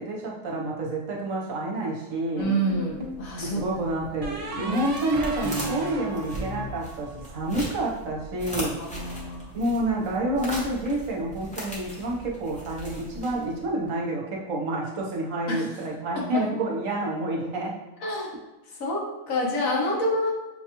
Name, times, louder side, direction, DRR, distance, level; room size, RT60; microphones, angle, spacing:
voice 1, 0.0-2.5 3.4-8.8 9.5-17.8, right 1 dB, 70° right, -2 dB, 1.2 m, -29 dB
voice 2, 2.4-3.6 4.6-4.8 8.8-9.5 15.5-15.7 16.2-16.4 18.0-18.3 18.7-20.3, equal, 80° left, -2 dB, 1.4 m, -28 dB
sound 1, 2.4-3.2 4.2-7.5, right 2 dB, 50° right, 0.4 m, -34 dB
sound 2, 2.7-13.7, right 1 dB, 5° left, 0.7 m, -40 dB
6.3 x 2.3 x 2.9 m, 1.1 s
omnidirectional pair, 1.4 m